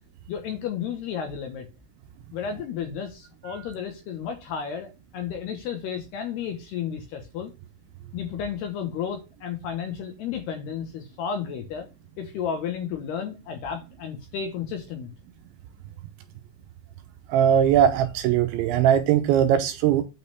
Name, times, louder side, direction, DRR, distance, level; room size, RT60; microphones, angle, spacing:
voice 1, 0.3-1.7 2.3-7.5 8.1-11.9 12.2-15.1, left 7 dB, 65° left, 2.8 m, -32 dB
voice 2, 17.3-20.0, right 9 dB, 85° right, 2.8 m, -20 dB
9.1 x 4.2 x 6.8 m
omnidirectional pair, 5.9 m